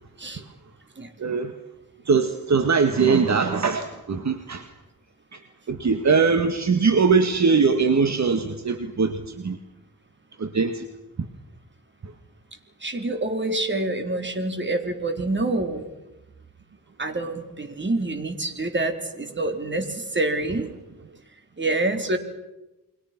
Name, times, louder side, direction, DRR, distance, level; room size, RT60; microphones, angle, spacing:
voice 1, 1.2-1.5 2.0-4.7 5.3-5.4 5.7-9.6 10.4-10.8 12.0-12.1, right 5 dB, 55° right, 8 dB, 1.8 m, -21 dB
voice 2, 12.8-15.9 17.0-20.7 21.6-22.2, right 2 dB, 35° right, 6 dB, 3.8 m, -27 dB
29.0 x 23.5 x 6.0 m, 1.0 s
cardioid pair, 85°, 34 cm